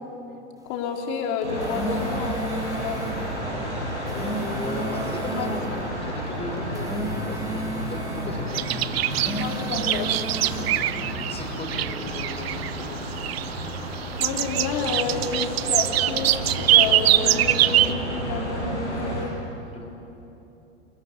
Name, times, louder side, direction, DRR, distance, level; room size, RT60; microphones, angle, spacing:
voice 1, 0.7-3.1 5.3-5.5 9.3-10.7 14.2-19.3, left 5 dB, 50° left, 2 dB, 4.0 m, -30 dB
sound 1, 1.4-3.2 3.9-5.7 6.6-8.4 9.0-10.7, right 2 dB, 10° right, 3.7 m, -34 dB
sound 2, 1.4-19.3, equal, 85° right, 7.3 m, -31 dB
voice 2, 4.1-5.8 6.1-9.2 9.5-9.6 11.3-13.0 19.7-19.9, left 2 dB, 15° left, 1 dB, 6.2 m, -36 dB
sound 3, 8.5-11.4 11.6-12.8 13.2-13.9 14.2-17.9, right 14 dB, 60° right, 0.8 m, -23 dB
28.0 x 21.0 x 9.7 m, 2.9 s
figure-of-eight pair, 85°, 34 cm